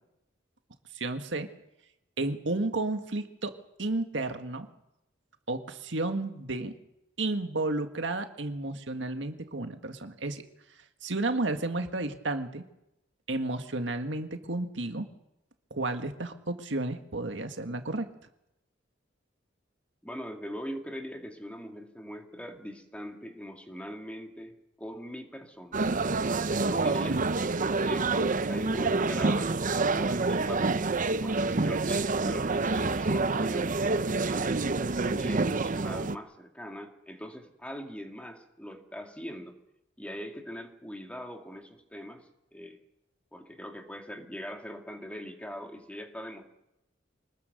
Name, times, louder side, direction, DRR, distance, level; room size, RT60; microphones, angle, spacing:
voice 1, 0.9-1.5 2.2-4.7 5.5-6.7 7.2-10.4 11.0-12.7 13.3-15.1 15.7-18.1, right 2 dB, 75° right, 7 dB, 1.8 m, -32 dB
voice 2, 20.0-25.8 26.6-27.2 27.8-29.5 29.9-30.8 31.2-33.8 34.2-39.6 40.0-42.8 43.3-46.4, equal, 5° left, 4 dB, 2.2 m, -42 dB
sound 1, 25.7-36.2, right 3 dB, 45° right, 0.7 m, -27 dB
25.5 x 20.0 x 6.7 m, 0.85 s
head